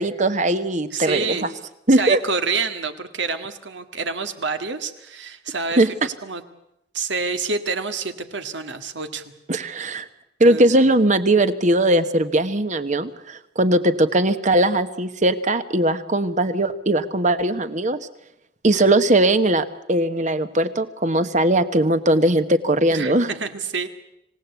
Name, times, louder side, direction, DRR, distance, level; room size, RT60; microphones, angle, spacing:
voice 1, 0.0-1.5 1.9-2.2 5.8-5.9 9.5-10.1 10.4-18.0 18.6-23.3, right 1 dB, 40° right, 11 dB, 1.3 m, -19 dB
voice 2, 0.9-1.5 1.9-6.4 6.9-9.2 10.4-10.9 18.7-18.8 22.9-23.9, right 4 dB, 75° right, 8 dB, 1.9 m, -28 dB
26.5 x 17.5 x 8.3 m, 0.83 s
head